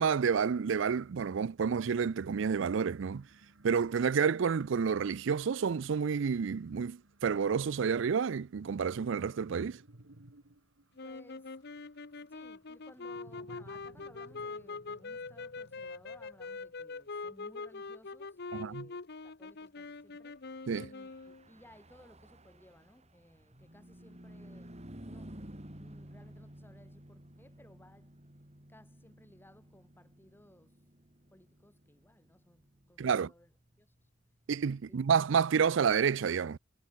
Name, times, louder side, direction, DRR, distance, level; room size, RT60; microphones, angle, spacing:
voice 1, 0.0-3.3 3.6-9.8 18.5-18.9 20.7-20.9 33.0-33.3 34.5-36.6, right 6 dB, 70° right, 0.4 m, -29 dB
sound 1, 2.2-17.7, right 1 dB, 85° right, 2.1 m, -61 dB
sound 2, 11.0-21.5, left 4 dB, 60° left, 1.0 m, -43 dB
voice 2, 11.0-11.6 12.1-24.8 25.0-28.1 28.7-30.9 31.3-34.1 34.8-35.1, left 1 dB, 10° left, 4.1 m, -60 dB
Car passing by / Truck, 20.8-34.5, right 1 dB, 35° right, 3.7 m, -53 dB
head